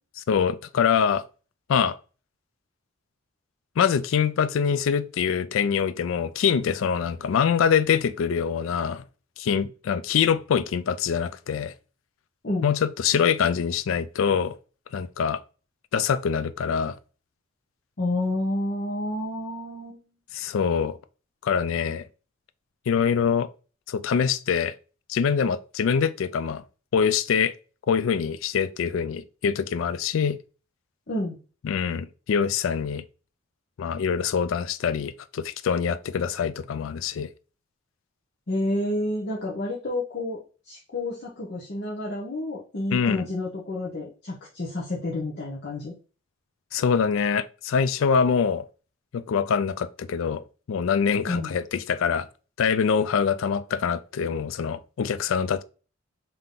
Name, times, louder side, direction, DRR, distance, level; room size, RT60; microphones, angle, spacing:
voice 1, 0.3-1.2 1.7-2.0 3.8-9.0 9.4-11.7 12.6-14.5 14.9-15.4 15.9-17.0 20.3-21.0 21.4-22.0 22.9-23.5 23.9-24.7 25.1-26.6 26.9-27.5 27.9-30.4 31.6-33.0 33.8-37.3 42.9-43.3 46.7-48.7 49.1-52.3 52.6-55.6, left 7 dB, 70° left, 0.3 m, -24 dB
voice 2, 18.0-20.0 31.1-31.4 38.5-40.4 40.7-45.9 51.3-51.5, left 1 dB, 50° left, 0.8 m, -29 dB
3.7 x 2.8 x 3.7 m
head